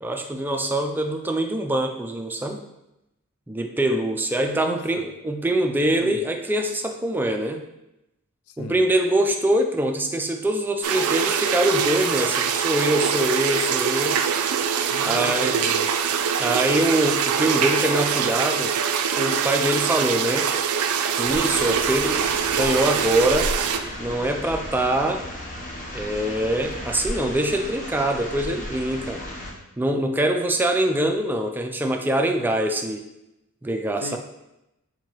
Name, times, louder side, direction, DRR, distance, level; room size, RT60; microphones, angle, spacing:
voice 1, 0.0-2.6 3.5-7.6 8.6-14.2 15.1-15.6 16.4-18.8 19.2-20.5 21.2-23.5 24.0-25.2 25.9-29.2 29.8-33.0 33.6-34.2, right 1 dB, 10° right, 0.3 m, -24 dB
voice 2, 4.5-5.1 6.0-6.3 8.5-9.0 14.9-16.0 34.0-34.2, left 5 dB, 85° left, 0.4 m, -37 dB
sound 1, 10.8-23.8, right 7 dB, 80° right, 0.4 m, -23 dB
sound 2, 21.2-29.5, left 1 dB, 35° left, 0.8 m, -34 dB
4.6 x 3.8 x 2.9 m
head